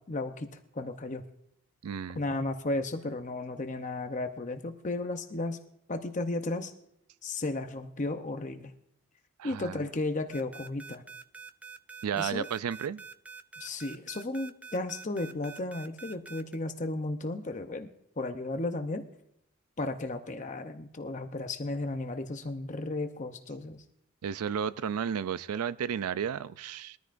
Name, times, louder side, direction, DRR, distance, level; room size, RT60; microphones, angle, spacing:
voice 1, 0.1-1.2 2.1-5.6 5.9-6.7 7.2-8.7 9.4-11.0 12.1-12.5 13.6-17.9 18.2-19.0 19.8-23.8, left 2 dB, 35° left, 6 dB, 0.7 m, -34 dB
voice 2, 1.8-2.2 9.4-9.8 12.0-13.0 24.2-27.0, right 8 dB, 85° right, 16 dB, 0.4 m, -33 dB
sound 1, 10.3-16.6, right 5 dB, 5° right, 0.4 m, -46 dB
21.5 x 13.5 x 2.6 m, 0.77 s
head